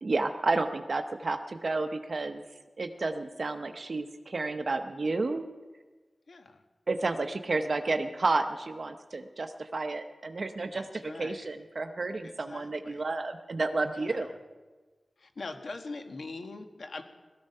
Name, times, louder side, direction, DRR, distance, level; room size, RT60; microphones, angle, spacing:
voice 1, 0.0-2.4 2.8-5.5 6.9-14.3, right 3 dB, 55° right, 7 dB, 0.8 m, -31 dB
voice 2, 6.3-6.6 10.7-11.5 12.2-13.1 13.9-14.3 15.2-17.0, left 3 dB, 75° left, 6 dB, 1.5 m, -43 dB
17.5 x 14.0 x 5.5 m, 1.3 s
wide cardioid pair, 75°, 0 cm